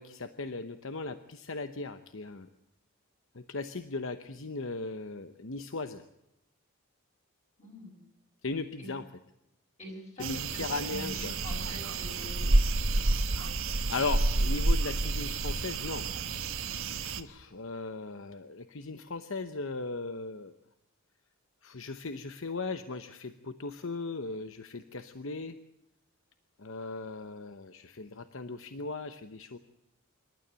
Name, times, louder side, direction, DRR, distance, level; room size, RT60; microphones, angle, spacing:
voice 1, 0.0-2.5 3.3-6.0 8.4-9.0 10.2-11.4 13.7-16.1 17.0-20.5 21.6-25.6 26.6-29.6, left 3 dB, 60° left, 10 dB, 0.9 m, -37 dB
voice 2, 7.6-8.0 8.8-9.0 9.8-12.6, left 1 dB, 30° left, 0 dB, 6.0 m, -44 dB
sound 1, 10.2-17.2, right 2 dB, 65° right, 1.3 m, -29 dB
26.0 x 12.5 x 8.9 m, 0.85 s
head